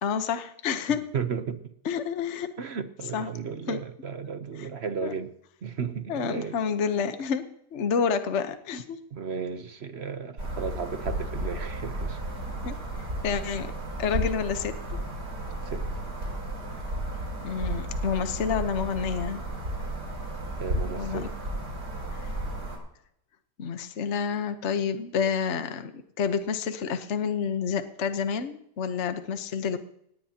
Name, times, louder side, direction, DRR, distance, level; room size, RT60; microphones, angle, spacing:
voice 1, 0.0-1.0 1.8-2.5 3.1-3.3 3.7-3.8 4.6-4.7 5.0-5.1 6.1-9.0 12.6-12.7 13.2-13.7 14.0-14.7 17.4-19.4 21.0-21.3 22.2-22.3 23.6-25.9 26.2-29.8, left 6 dB, 50° left, 1.2 m, -29 dB
voice 2, 1.1-1.7 2.6-5.3 5.6-6.6 9.1-12.2 15.6-15.9 20.4-21.3, right 6 dB, 50° right, 0.9 m, -34 dB
sound 1, 10.4-22.8, right 1 dB, 80° right, 7.8 m, -33 dB
18.5 x 18.0 x 2.9 m
omnidirectional pair, 1.7 m